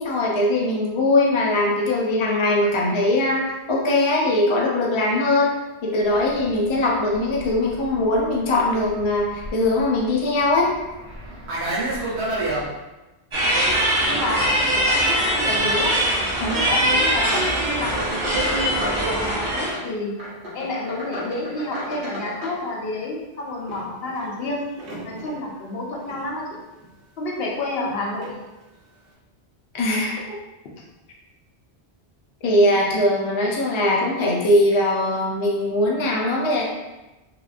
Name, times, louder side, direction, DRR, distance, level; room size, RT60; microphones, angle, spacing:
voice 1, 0.0-5.5 5.8-10.7 16.4-16.5 29.7-30.4 32.4-36.6, left 1 dB, 50° left, -2 dB, 0.3 m, -21 dB
Fixed-wing aircraft airplane, 6.2-12.7, right 1 dB, 85° right, 1.0 m, -31 dB
sound 1, 13.3-19.7, right 1 dB, 40° right, 0.4 m, -22 dB
sound 2, 13.5-14.7 14.9-15.5 16.0-23.1 23.6-25.4 26.0-26.3 26.8-26.9 27.8-27.9 28.2-28.4, equal, 60° right, 0.9 m, -34 dB
voice 2, 14.0-18.7 19.1-20.1 20.5-24.6 25.0-26.5 27.2-28.3, left 2 dB, 65° left, -3 dB, 0.8 m, -29 dB
2.8 x 2.4 x 2.4 m, 1.1 s
omnidirectional pair, 1.1 m